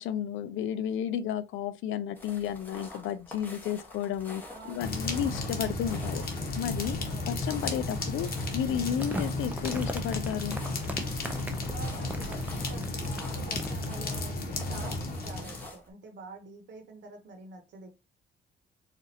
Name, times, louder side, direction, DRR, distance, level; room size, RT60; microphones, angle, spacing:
voice 1, 0.0-6.2 6.6-7.0 7.3-10.6, left 9 dB, 75° left, 0.4 m, -32 dB
sound 1, 2.2-15.9, left 2 dB, 10° left, 1.2 m, -47 dB
voice 2, 4.5-5.5 7.1-7.3 7.9-8.2 11.7-18.0, right 3 dB, 60° right, 0.9 m, -47 dB
sound 2, 4.8-15.7, left 2 dB, 50° left, 1.1 m, -34 dB
Crumpling crinkling, 8.6-13.9, right 1 dB, 10° right, 0.6 m, -39 dB
4.0 x 2.5 x 2.7 m
cardioid pair, 90°, 20 cm